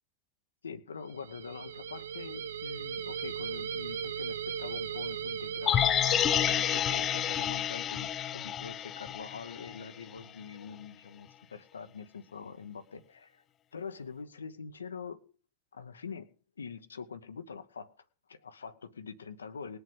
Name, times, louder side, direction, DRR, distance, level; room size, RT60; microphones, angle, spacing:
voice 1, 0.6-13.4 13.7-15.3 15.7-19.8, left 5 dB, 70° left, 9 dB, 1.1 m, -44 dB
sound 1, 1.1-7.5, right 7 dB, 65° right, 1.0 m, -38 dB
sound 2, 5.7-9.9 10.2-10.3, left 10 dB, 30° left, 0.6 m, -29 dB
20.0 x 8.0 x 5.4 m, 0.38 s
figure-of-eight pair, 90°, 0 cm